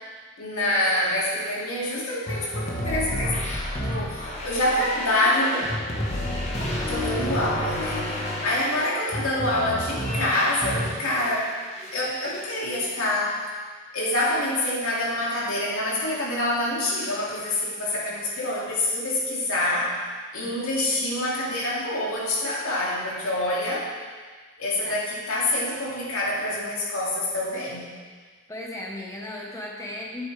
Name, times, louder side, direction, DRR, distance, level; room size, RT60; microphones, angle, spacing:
voice 1, 0.4-3.4 3.8-5.6 6.8-11.5 11.9-13.4 13.9-19.9 20.3-23.9 24.6-27.9, left 1 dB, 80° left, -5 dB, 2.4 m, -26 dB
sound 1, 2.3-11.4 11.7-12.5, left 1 dB, 30° left, 1.2 m, -30 dB
voice 2, 28.5-30.3, left 1 dB, 15° left, -2 dB, 1.1 m, -36 dB
10.5 x 8.1 x 3.4 m, 1.5 s
head